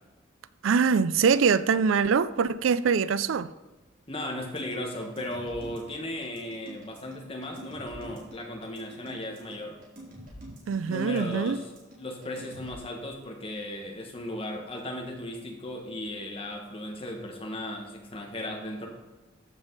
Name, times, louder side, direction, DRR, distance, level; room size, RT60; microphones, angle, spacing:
voice 1, 0.6-3.5 10.7-11.6, right 6 dB, 90° right, 0.4 m, -23 dB
voice 2, 4.1-9.8 10.9-11.6 12.0-18.9, left 1 dB, 30° left, 1.6 m, -36 dB
sound 1, 4.6-12.7, right 1 dB, 45° right, 3.2 m, -46 dB
14.0 x 5.2 x 4.0 m
head